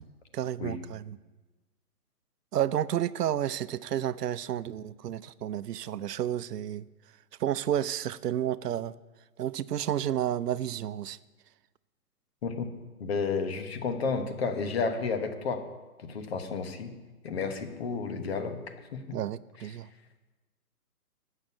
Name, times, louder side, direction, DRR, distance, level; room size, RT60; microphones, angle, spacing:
voice 1, 0.3-1.2 2.5-6.9 7.4-8.9 9.4-11.2 19.1-19.9, right 11 dB, 85° right, 0.6 m, -31 dB
voice 2, 13.0-15.6 16.0-16.9 17.2-18.6 18.9-19.0, left 4 dB, 40° left, 1.2 m, -31 dB
9.1 x 6.6 x 8.5 m
hypercardioid pair, 160°, 46 cm